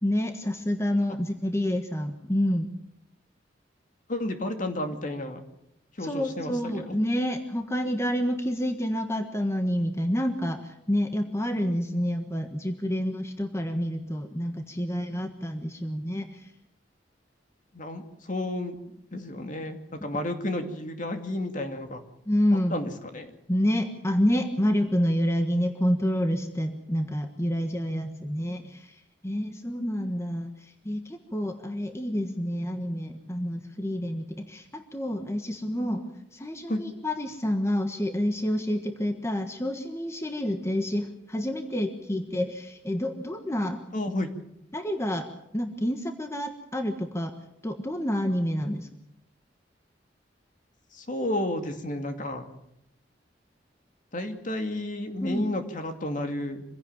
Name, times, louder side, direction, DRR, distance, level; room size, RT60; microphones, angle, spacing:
voice 1, 0.0-2.7 6.0-16.5 22.3-22.8 23.5-36.0 36.3-43.8 44.7-45.3 45.5-47.3 47.6-48.9 55.2-55.5, equal, 15° left, 6 dB, 1.4 m, -28 dB
voice 2, 4.1-5.4 6.0-6.9 17.7-22.0 22.7-23.3 36.7-36.8 43.9-44.3 50.9-52.4 54.1-56.6, left 1 dB, 45° left, 5 dB, 2.4 m, -32 dB
25.0 x 16.0 x 7.4 m, 0.78 s
head